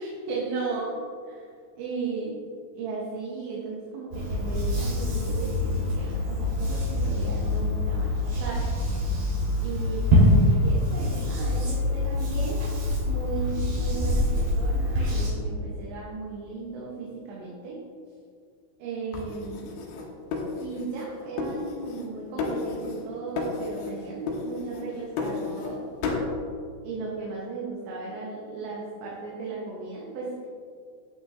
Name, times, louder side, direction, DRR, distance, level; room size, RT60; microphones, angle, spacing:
voice 1, 0.0-1.4 1.8-2.4 2.7-8.6 9.6-12.8 13.1-17.9 18.8-19.8 20.6-25.9 26.8-30.5, right 4 dB, 70° right, -4 dB, 3.4 m, -35 dB
sound 1, 4.1-15.3, left 1 dB, 45° right, 4.0 m, -25 dB
sound 2, 19.1-21.1 21.4-22.1 22.4-23.1 23.4-24.0 24.3-25.7 26.0-26.3, left 4 dB, 75° left, 3.5 m, -32 dB
11.5 x 9.0 x 3.5 m, 2.2 s
omnidirectional pair, 5.7 m